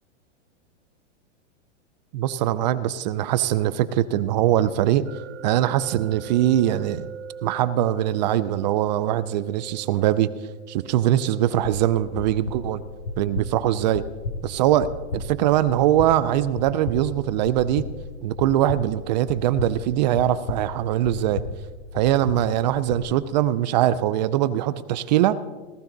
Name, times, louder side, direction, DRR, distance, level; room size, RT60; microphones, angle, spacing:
voice 1, 2.1-5.0 5.4-7.1 7.4-10.3 10.7-12.8 13.2-14.0 14.4-14.9 15.1-17.8 18.2-21.4 21.9-25.3, right 12 dB, 40° right, 16 dB, 0.5 m, -22 dB
sound 1, 5.0-17.9, right 7 dB, 55° right, 1.9 m, -45 dB
sound 2, 11.6-23.1, left 3 dB, 85° left, 1.9 m, -35 dB
18.0 x 13.0 x 3.9 m, 1.3 s
hypercardioid pair, 145°, 36 cm